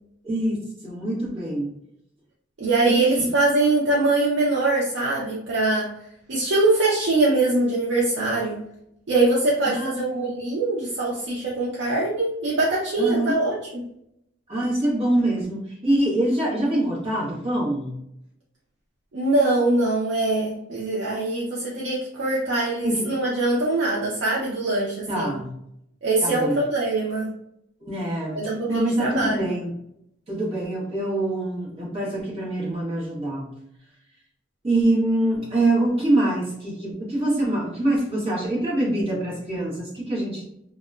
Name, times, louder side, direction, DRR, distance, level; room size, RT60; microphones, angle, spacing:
voice 1, 0.2-0.6 0.8-1.7 2.9-3.2 9.7-10.0 13.0-13.4 14.5-17.9 22.8-23.0 25.1-25.5 26.2-26.6 27.8-28.4 28.7-29.7 30.3-33.5 34.6-40.4, right 1 dB, 35° right, -5 dB, 1.0 m, -24 dB
voice 2, 2.6-5.9 6.3-8.6 9.1-13.8 19.1-25.3 26.0-27.3 28.3-29.5, right 2 dB, 85° right, -5 dB, 0.5 m, -23 dB
2.8 x 2.1 x 2.3 m, 0.77 s
head